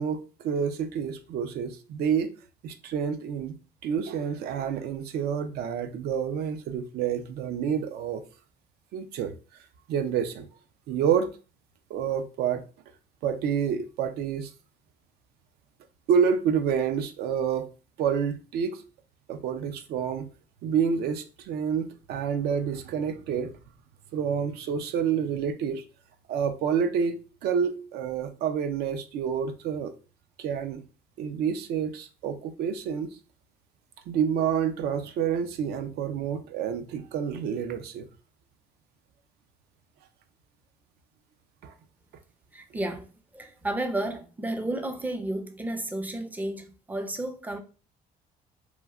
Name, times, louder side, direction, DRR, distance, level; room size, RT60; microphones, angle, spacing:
voice 1, 0.0-2.3 2.6-3.6 3.8-8.2 8.9-9.3 9.9-10.5 10.9-11.3 11.9-12.6 13.2-14.5 16.1-17.7 18.0-18.8 19.3-20.3 20.6-23.5 24.1-25.8 26.3-30.0 30.4-30.8 31.2-33.1 34.1-38.1 41.6-41.7, right 7 dB, 70° right, 0.4 m, -28 dB
voice 2, 42.5-43.1 43.3-47.6, right 1 dB, 10° right, 0.4 m, -32 dB
3.1 x 2.3 x 2.3 m
cardioid pair, 110°, 17 cm